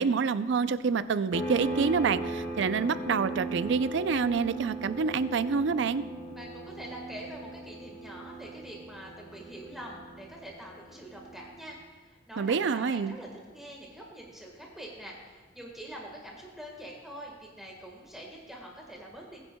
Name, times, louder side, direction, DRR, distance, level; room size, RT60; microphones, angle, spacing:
voice 1, 0.0-6.0 12.4-13.1, right 5 dB, 65° right, 14 dB, 0.4 m, -27 dB
sound 1, 1.3-11.6, right 2 dB, 20° left, 3.9 m, -38 dB
voice 2, 6.3-11.8 12.0-19.4, right 1 dB, ahead, -2 dB, 1.4 m, -45 dB
20.0 x 9.8 x 2.2 m, 1.4 s
head